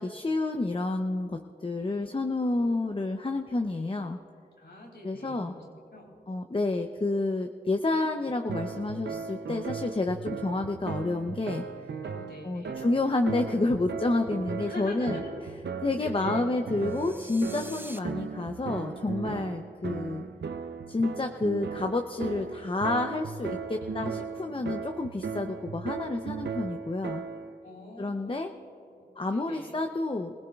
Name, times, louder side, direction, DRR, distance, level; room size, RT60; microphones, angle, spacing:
voice 1, 0.0-4.2 5.0-5.5 6.3-11.6 12.4-15.2 15.8-20.2 20.9-27.2 28.0-28.5 29.2-30.3, left 2 dB, 30° left, 5 dB, 0.6 m, -29 dB
voice 2, 1.7-2.3 4.6-5.6 5.9-6.1 12.0-12.8 14.6-15.3 15.9-16.5 23.8-24.5 27.6-29.7, left 1 dB, 80° left, -2 dB, 3.6 m, -45 dB
sound 1, 8.5-27.6, right 5 dB, 80° right, 0.6 m, -37 dB
sound 2, 16.8-18.0, right 1 dB, 10° right, 0.7 m, -45 dB
24.5 x 17.0 x 2.4 m, 2.8 s
cardioid pair, 45°, 18 cm